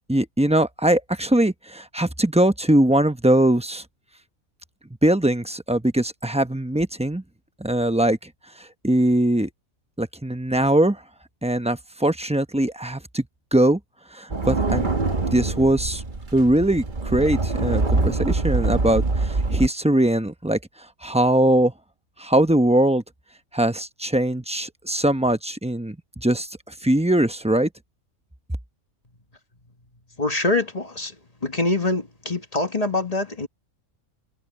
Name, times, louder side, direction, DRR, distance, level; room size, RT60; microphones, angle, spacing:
voice 1, 0.1-3.8 5.0-7.2 7.6-8.2 8.6-9.5 10.0-11.0 11.4-13.2 13.5-13.8 14.1-14.9 15.3-16.0 16.3-20.6 21.0-21.7 22.2-23.0 23.5-26.5 26.8-27.7, right 1 dB, 5° right, 0.7 m, -21 dB
sound 1, 14.3-19.7, right 3 dB, 35° right, 1.6 m, -24 dB
voice 2, 30.2-31.1 31.4-33.5, left 2 dB, 25° left, 1.4 m, -24 dB
omnidirectional pair, 1.5 m